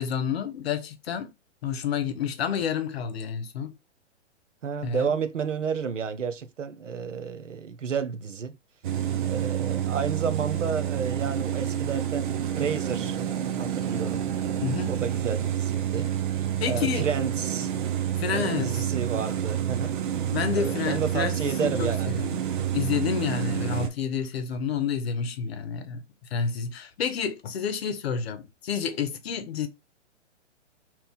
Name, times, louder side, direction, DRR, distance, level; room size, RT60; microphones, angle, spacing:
voice 1, 0.0-1.3 1.6-3.8 4.8-5.1 14.6-14.9 16.6-17.1 18.2-18.8 20.3-22.4 22.7-26.0 26.3-29.7, left 7 dB, 55° left, 0.9 m, -29 dB
voice 2, 4.6-8.6 9.2-13.2 13.5-16.1 16.6-17.7 18.3-20.0 20.5-22.2, right 6 dB, 85° right, 0.7 m, -31 dB
sound 1, 8.8-23.9, right 10 dB, 45° right, 0.5 m, -28 dB
2.9 x 2.6 x 3.5 m
figure-of-eight pair, 125°, 36 cm